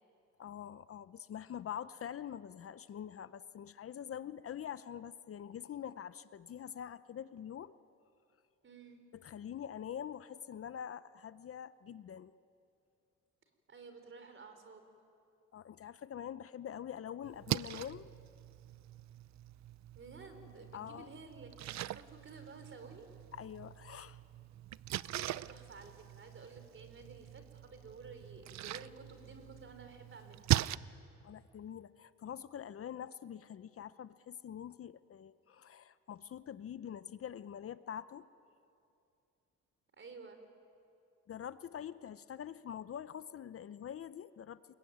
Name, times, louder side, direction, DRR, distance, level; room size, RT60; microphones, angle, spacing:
voice 1, 0.4-7.7 9.1-12.3 15.5-18.1 20.7-21.1 23.3-24.2 31.2-38.3 41.3-44.8, left 9 dB, 50° left, 15 dB, 0.7 m, -45 dB
voice 2, 8.6-9.0 13.7-14.9 19.9-23.1 25.0-30.5 40.0-40.4, right 4 dB, 40° right, 7 dB, 4.4 m, -53 dB
Splash splatter, 17.2-30.8, right 14 dB, 65° right, 0.6 m, -41 dB
28.5 x 22.0 x 9.4 m, 2.6 s
cardioid pair, 90°, 30 cm